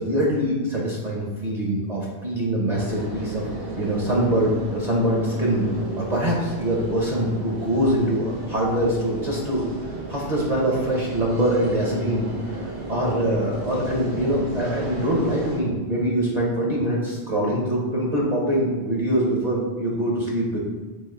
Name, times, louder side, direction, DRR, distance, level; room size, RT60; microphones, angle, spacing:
voice 1, 0.0-3.5 3.7-5.7 6.0-9.6 10.1-12.3 12.9-20.6, right 1 dB, 45° right, -3 dB, 0.7 m, -23 dB
sound 1, 2.7-15.6, right 1 dB, 80° right, 1.1 m, -34 dB
4.0 x 2.8 x 4.2 m, 1.3 s
omnidirectional pair, 1.1 m